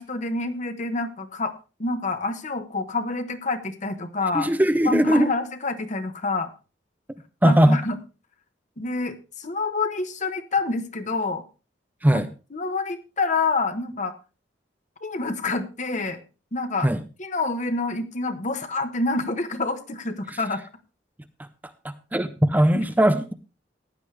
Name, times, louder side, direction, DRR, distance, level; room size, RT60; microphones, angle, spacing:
voice 1, 0.0-1.5 1.8-4.5 4.8-6.5 7.4-8.0 8.8-11.4 12.1-12.2 12.5-14.1 15.0-16.2 16.5-16.9 17.2-20.6 22.7-22.8, left 3 dB, 40° left, 8 dB, 1.3 m, -27 dB
voice 2, 4.3-5.3 7.4-7.8 12.0-12.3 16.8-17.0 21.8-23.3, right 1 dB, 10° right, 9 dB, 0.6 m, -19 dB
15.5 x 10.0 x 3.4 m, 0.32 s
head